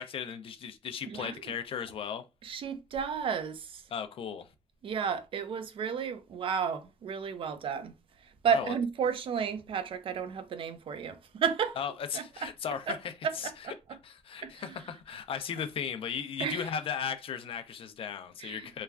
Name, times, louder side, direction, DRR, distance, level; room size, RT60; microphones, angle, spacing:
voice 1, 0.0-2.2 3.9-4.5 8.5-8.7 11.8-13.7 14.0-18.8, left 7 dB, 55° left, 0.4 m, -36 dB
voice 2, 1.1-1.5 2.4-3.8 4.8-7.9 8.2-11.8 12.1-12.5 12.9-13.0 13.2-13.7 14.4-14.8 16.4-16.7 18.4-18.8, right 7 dB, 50° right, 0.5 m, -33 dB
3.1 x 2.3 x 2.3 m
cardioid pair, 100°, 11 cm